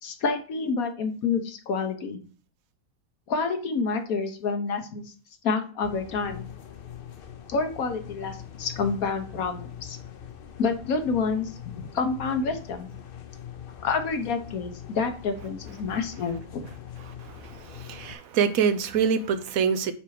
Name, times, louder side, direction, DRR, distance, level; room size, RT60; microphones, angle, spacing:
voice 1, 0.0-2.2 3.3-5.1 5.4-6.4 7.5-10.0 10.6-12.9 13.8-16.7, left 4 dB, 75° left, 1.5 m, -28 dB
sound 1, 5.8-18.1, left 10 dB, 50° left, 0.7 m, -42 dB
voice 2, 17.2-19.9, right 6 dB, 75° right, 1.1 m, -25 dB
5.9 x 4.5 x 4.9 m
omnidirectional pair, 1.5 m